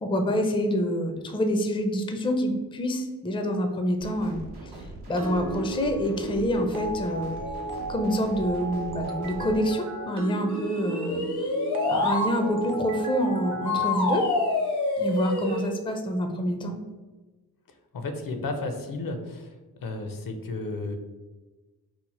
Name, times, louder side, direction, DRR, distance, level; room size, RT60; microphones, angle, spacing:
voice 1, 0.0-4.7 5.1-7.4 7.9-11.3 11.9-14.3 15.0-16.8, equal, 15° left, 4 dB, 0.4 m, -27 dB
sound 1, 4.0-9.7, right 1 dB, 85° right, 0.8 m, -42 dB
sound 2, 5.2-14.5, right 2 dB, 55° right, 0.6 m, -35 dB
sound 3, 10.5-12.3 13.7-15.7, left 3 dB, 80° left, 1.0 m, -27 dB
voice 2, 17.9-19.5 19.8-21.0, left 2 dB, 65° left, 6 dB, 0.6 m, -33 dB
2.9 x 2.1 x 4.0 m, 1.2 s
cardioid pair, 65°, 38 cm